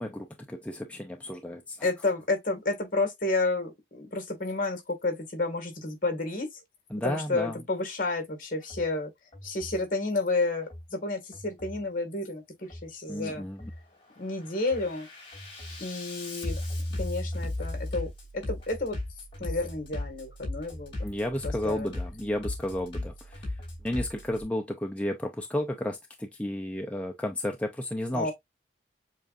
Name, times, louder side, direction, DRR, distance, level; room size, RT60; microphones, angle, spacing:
voice 1, 0.0-1.9 6.9-7.6 13.1-13.7 21.0-23.5 23.8-28.3, left 1 dB, 5° left, 0.5 m, -32 dB
voice 2, 1.8-6.5 7.0-9.1 9.4-13.4 14.2-15.1 15.8-16.6 17.0-19.0 19.4-21.1 21.4-21.9 28.1-28.3, left 2 dB, 50° left, 1.9 m, -31 dB
Bass drum, 8.6-8.8 9.3-9.8 10.6-10.8 11.3-11.8 12.6-12.8 13.3-13.8 14.2-24.4, left 1 dB, 30° left, 2.9 m, -37 dB
7.4 x 2.5 x 2.5 m
head